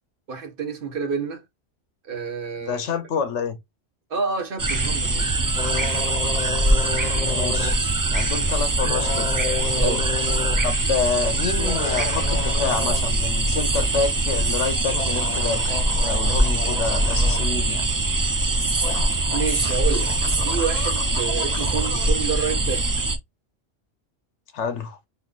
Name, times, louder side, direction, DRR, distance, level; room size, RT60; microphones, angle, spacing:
voice 1, 0.3-1.4 2.0-2.8 4.1-5.4 9.8-10.0 18.6-18.7 19.0-22.9, right 6 dB, 55° right, 1.1 m, -29 dB
voice 2, 2.6-3.6 7.2-7.8 8.1-9.3 9.8-10.0 10.6-15.6 16.0-17.9 24.5-25.0, left 5 dB, 85° left, 1.0 m, -28 dB
sound 1, 4.6-23.2, right 2 dB, 30° right, 0.3 m, -23 dB
sound 2, 5.6-7.8 8.8-10.6 11.4-13.1 13.3-13.4 14.9-17.6 18.5-18.6 18.8-22.1, left 6 dB, 45° left, 0.6 m, -32 dB
4.3 x 2.8 x 2.4 m
omnidirectional pair, 1.2 m